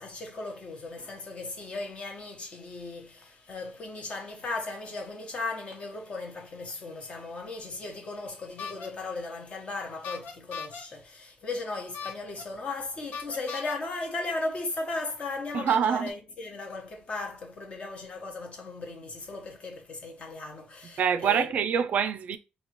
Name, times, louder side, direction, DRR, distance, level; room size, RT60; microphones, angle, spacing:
voice 1, 0.0-21.5, left 3 dB, 40° left, 1.0 m, -36 dB
sound 1, 8.6-8.9 10.0-10.8 11.9-12.4 13.1-13.8 14.8-14.9 15.7-16.1, left 5 dB, 90° left, 0.8 m, -38 dB
voice 2, 15.5-16.1 21.0-22.4, right 7 dB, 55° right, 0.4 m, -25 dB
4.5 x 2.8 x 2.9 m
cardioid pair, 150°, 3 cm